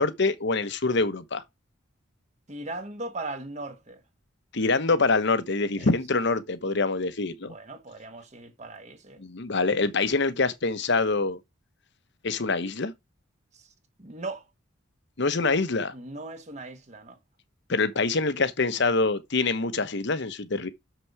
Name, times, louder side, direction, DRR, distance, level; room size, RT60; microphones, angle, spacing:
voice 1, 0.0-1.4 4.5-7.5 9.2-11.4 12.2-12.9 15.2-15.9 17.7-20.7, left 3 dB, 60° left, 1.0 m, -25 dB
voice 2, 2.5-4.0 5.8-5.9 7.5-9.2 13.5-13.7 14.0-14.5 15.9-17.2, right 2 dB, 35° right, 1.2 m, -38 dB
6.9 x 6.1 x 4.7 m
head